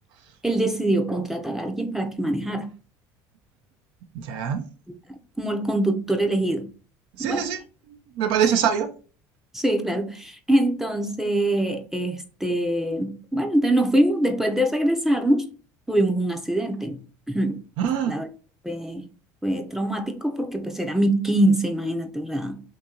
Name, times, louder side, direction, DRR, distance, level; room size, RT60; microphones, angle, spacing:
voice 1, 0.4-2.7 5.4-6.7 7.2-7.5 9.5-15.5 15.9-17.0 17.3-17.6 18.0-18.3 18.6-19.1 19.4-22.6, right 1 dB, 5° right, 0.6 m, -24 dB
voice 2, 4.1-4.6 7.2-7.6 8.2-8.9 17.8-18.1, right 8 dB, 70° right, 0.5 m, -23 dB
2.7 x 2.7 x 3.7 m
supercardioid pair, 90°, 9 cm